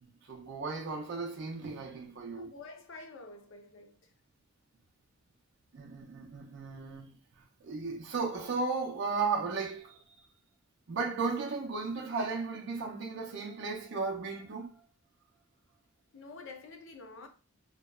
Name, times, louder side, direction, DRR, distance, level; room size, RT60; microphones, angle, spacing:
voice 1, 0.0-2.5 5.7-7.2 7.6-10.0 10.9-14.9, right 4 dB, 55° right, 0.5 m, -35 dB
voice 2, 2.3-4.1 16.1-17.3, left 3 dB, 60° left, 0.5 m, -48 dB
2.8 x 2.2 x 2.2 m
head